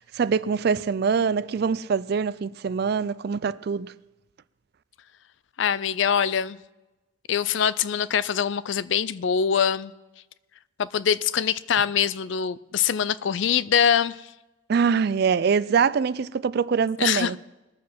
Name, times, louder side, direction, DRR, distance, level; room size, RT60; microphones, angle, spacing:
voice 1, 0.0-3.9 14.7-17.4, right 6 dB, 50° right, 0.3 m, -24 dB
voice 2, 5.6-6.6 7.3-9.9 10.8-14.2 17.0-17.4, left 8 dB, 65° left, 0.4 m, -23 dB
19.5 x 7.5 x 5.9 m
head